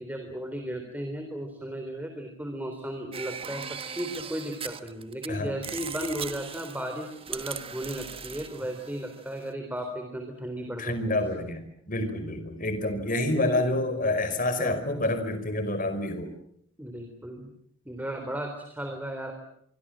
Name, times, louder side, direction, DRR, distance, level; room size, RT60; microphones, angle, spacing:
voice 1, 0.0-11.4 13.3-13.7 14.6-14.8 16.8-17.5 17.9-19.3, right 1 dB, 10° right, 5 dB, 3.7 m, -35 dB
sound 1, 3.1-5.3 5.6-9.5, right 7 dB, 30° right, 1.4 m, -39 dB
voice 2, 10.8-16.3, left 2 dB, 45° left, 10 dB, 5.0 m, -28 dB
25.5 x 25.0 x 7.6 m, 0.68 s
head